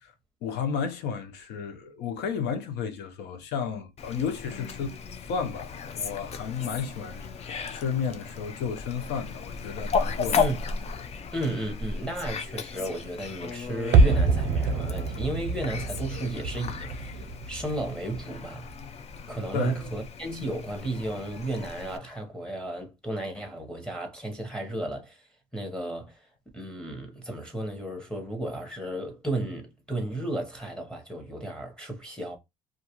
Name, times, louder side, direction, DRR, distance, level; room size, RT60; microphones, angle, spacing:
voice 1, 0.4-4.9 5.2-10.4 19.5-19.8, left 6 dB, 85° left, 0.7 m, -32 dB
Fowl, 4.0-22.0, left 5 dB, 40° left, 0.4 m, -35 dB
voice 2, 11.3-18.6 19.3-25.2 25.5-26.3 26.5-32.4, right 1 dB, 5° left, 0.8 m, -33 dB
sound 1, 13.9-18.9 19.1-19.2, right 3 dB, 85° right, 0.5 m, -25 dB
2.5 x 2.3 x 2.9 m
cardioid pair, 110°, 17 cm